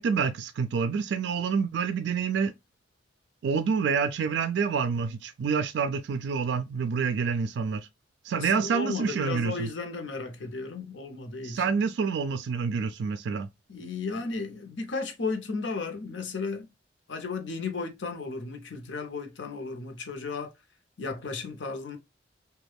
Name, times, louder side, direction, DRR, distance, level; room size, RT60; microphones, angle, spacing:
voice 1, 0.0-2.5 3.4-7.9 8.2-9.7 11.4-13.5, right 5 dB, 70° right, 0.3 m, -27 dB
voice 2, 8.3-11.7 13.7-16.7 17.1-20.5 21.0-22.0, left 4 dB, 80° left, 0.7 m, -34 dB
3.1 x 2.2 x 3.3 m
head